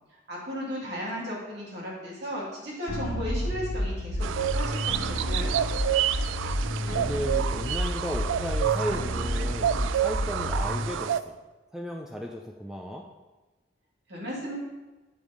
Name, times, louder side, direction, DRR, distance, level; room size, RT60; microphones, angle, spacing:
voice 1, 0.3-5.7 14.1-14.6, equal, 60° right, -4 dB, 2.3 m, -35 dB
sound 1, 2.9-10.9, left 1 dB, 70° left, 1.2 m, -30 dB
sound 2, 4.2-11.2, right 10 dB, 75° right, 0.3 m, -29 dB
voice 2, 6.5-11.3 11.7-13.0, equal, 5° right, 1 dB, 0.4 m, -35 dB
7.2 x 4.8 x 5.1 m, 1.2 s
head